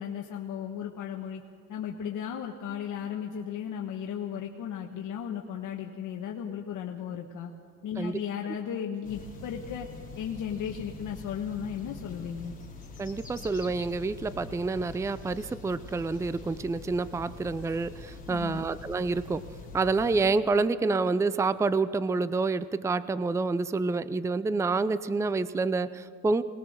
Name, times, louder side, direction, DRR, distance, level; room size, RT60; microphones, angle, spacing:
voice 1, 0.0-1.4 1.7-7.5 7.8-9.9 10.2-12.5 18.3-18.6, left 8 dB, 65° left, 1 dB, 1.4 m, -35 dB
sound 1, 9.0-20.3, left 4 dB, 25° left, 3.0 m, -45 dB
voice 2, 13.0-19.4 19.7-26.4, right 3 dB, 10° right, 15 dB, 0.5 m, -28 dB
23.5 x 20.0 x 6.5 m, 2.1 s
cardioid pair, 115°, 34 cm